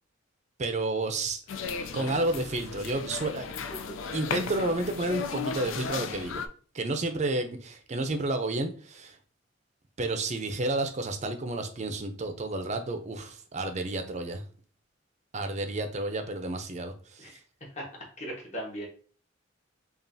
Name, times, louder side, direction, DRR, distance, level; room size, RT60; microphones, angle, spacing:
voice 1, 0.6-1.4 1.8-3.5 4.1-6.4 6.7-9.2 10.0-14.4 15.3-17.4, right 2 dB, 35° right, 7 dB, 0.5 m, -31 dB
sound 1, 1.5-6.5, left 5 dB, 85° left, 0.4 m, -35 dB
voice 2, 18.2-18.9, equal, 35° left, -2 dB, 1.3 m, -37 dB
5.4 x 2.4 x 2.6 m, 0.42 s
head